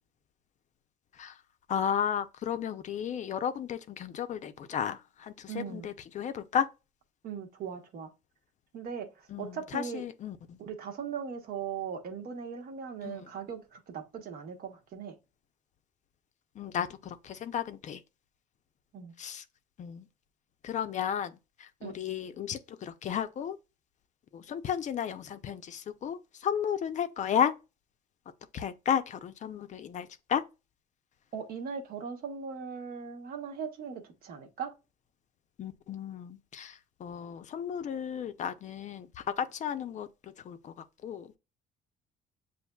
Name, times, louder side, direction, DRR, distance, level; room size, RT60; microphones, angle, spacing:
voice 1, 1.7-6.7 9.3-10.6 13.0-13.2 16.6-18.0 19.2-19.4 19.8-20.0 20.6-21.3 21.6-23.6 24.3-27.5 28.5-30.4 35.6-39.1 39.4-40.7 41.0-41.4, left 8 dB, 45° left, 0.5 m, -33 dB
voice 2, 5.5-5.9 7.2-8.1 8.7-10.0 10.6-15.1 18.9-19.1 21.8-22.0 31.3-34.7, right 7 dB, 60° right, 1.0 m, -39 dB
7.0 x 2.5 x 2.3 m
cardioid pair, 110°, 17 cm